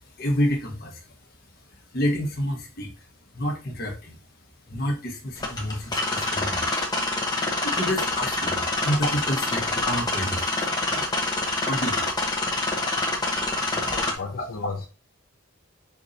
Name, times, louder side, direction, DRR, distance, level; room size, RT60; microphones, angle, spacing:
voice 1, 0.2-1.0 1.9-2.9 3.3-4.2 4.7-6.9 7.6-10.5 10.8-11.0 11.7-12.1 14.4-14.5, equal, 45° left, 1 dB, 1.2 m, -29 dB
sound 1, 5.4-14.1, left 2 dB, 20° left, 0.8 m, -26 dB
voice 2, 13.7-14.9, left 4 dB, 75° left, 2 dB, 0.6 m, -35 dB
4.6 x 2.7 x 3.8 m, 0.32 s
head